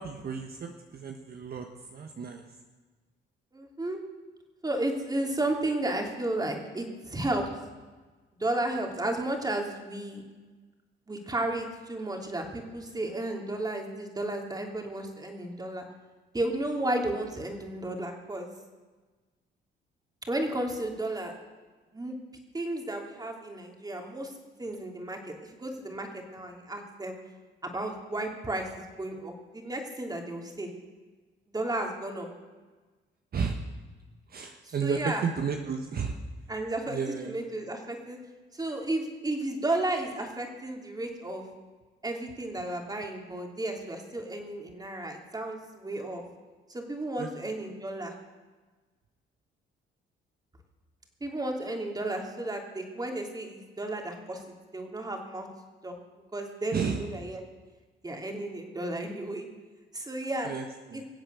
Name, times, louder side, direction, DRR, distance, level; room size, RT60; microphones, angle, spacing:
voice 1, 0.0-2.4 33.3-33.6 34.3-36.2 36.9-37.3 47.2-47.5 56.7-57.0 60.4-61.0, right 6 dB, 50° right, 4 dB, 1.3 m, -33 dB
voice 2, 3.5-4.0 4.6-7.5 8.4-10.2 11.1-15.8 16.3-18.5 20.3-21.3 21.9-22.1 22.5-24.3 24.6-27.2 27.6-30.7 31.5-32.3 34.6-35.2 36.5-38.2 38.5-41.5 42.0-46.2 46.7-48.1 51.2-54.4 54.7-55.5 55.8-55.9 56.3-57.4 58.0-59.5 59.9-60.5 60.9-61.0, right 1 dB, 20° right, 2 dB, 3.1 m, -33 dB
23.5 x 8.0 x 6.9 m, 1.3 s
cardioid pair, 90°, 20 cm